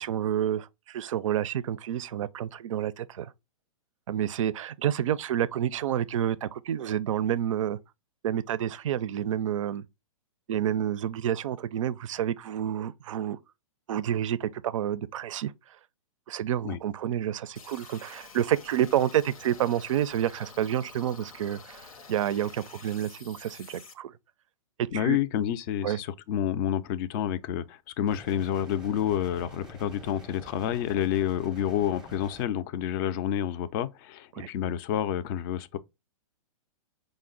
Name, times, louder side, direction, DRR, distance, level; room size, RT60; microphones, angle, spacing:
voice 1, 0.0-3.3 4.1-7.8 8.2-9.8 10.5-13.4 13.9-15.5 16.3-24.1 24.8-25.2 25.8-26.0 34.3-34.5, right 10 dB, 65° right, 0.4 m, -29 dB
sound 1, 17.6-23.9, left 4 dB, 85° left, 0.7 m, -49 dB
voice 2, 24.9-35.8, left 10 dB, 35° left, 0.4 m, -29 dB
sound 2, 28.1-32.5, equal, 5° right, 0.7 m, -48 dB
4.9 x 2.0 x 3.8 m
hypercardioid pair, 120°, 18 cm